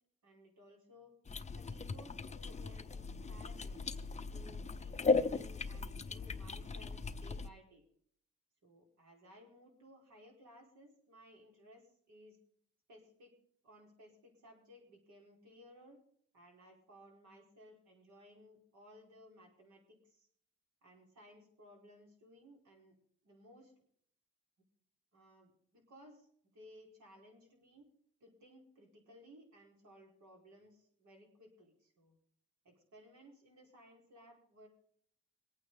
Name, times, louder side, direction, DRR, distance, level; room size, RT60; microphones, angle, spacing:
voice 1, 0.2-1.1 1.5-3.8 4.3-7.8 8.6-12.4 12.9-13.3 13.6-16.0 16.3-20.3 20.8-22.9 23.2-23.7 25.1-26.3 26.5-27.9 28.2-32.2 32.6-34.7, equal, 65° right, 0 dB, 4.8 m, -60 dB
sound 1, 1.3-7.5, left 4 dB, 25° left, 0.7 m, -37 dB
23.5 x 9.0 x 4.0 m, 0.65 s
cardioid pair, 90°, 30 cm